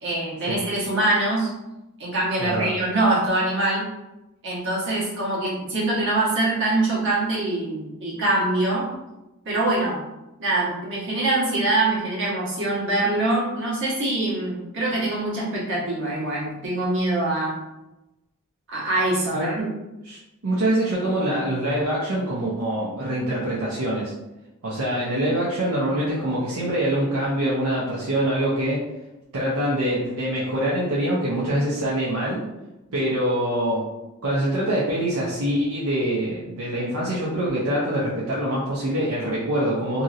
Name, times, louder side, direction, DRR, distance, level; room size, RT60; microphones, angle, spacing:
voice 1, 0.0-1.5 2.0-3.9 4.4-8.9 9.4-10.0 10.4-17.6 18.7-19.7, right 2 dB, 60° right, -6 dB, 1.2 m, -24 dB
voice 2, 2.4-2.7 19.3-19.5 20.1-20.2 20.4-24.1 24.6-28.8 29.3-32.4 32.9-33.8 34.2-40.0, right 1 dB, 85° right, -7 dB, 0.7 m, -24 dB
2.9 x 2.7 x 2.5 m, 0.99 s
head